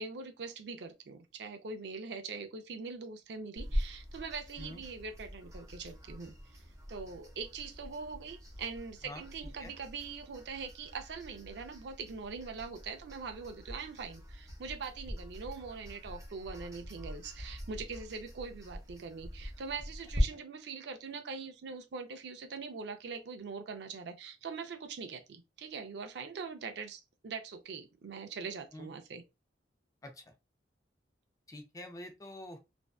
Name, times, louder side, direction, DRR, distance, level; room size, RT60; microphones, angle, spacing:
voice 1, 0.0-6.6 6.9-29.2, right 5 dB, 65° right, 0.4 m, -42 dB
sound 1, 3.6-20.2, equal, 20° right, 0.6 m, -43 dB
voice 2, 30.0-30.3 31.5-32.6, left 1 dB, 20° left, 0.4 m, -46 dB
2.5 x 2.2 x 2.3 m
head